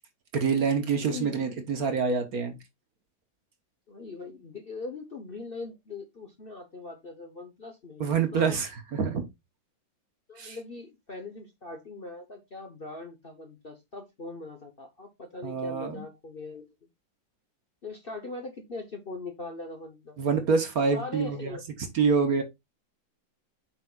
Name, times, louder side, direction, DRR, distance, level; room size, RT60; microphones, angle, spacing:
voice 1, 0.3-2.6 8.0-9.2 10.4-10.6 15.4-16.0 20.2-21.6 21.9-22.4, right 5 dB, 55° right, 1.5 m, -26 dB
voice 2, 1.0-1.5 3.9-8.0 8.3-8.6 10.3-16.7 17.8-20.2 20.9-21.6, left 3 dB, 35° left, 1.0 m, -41 dB
8.2 x 6.3 x 2.4 m
omnidirectional pair, 2.1 m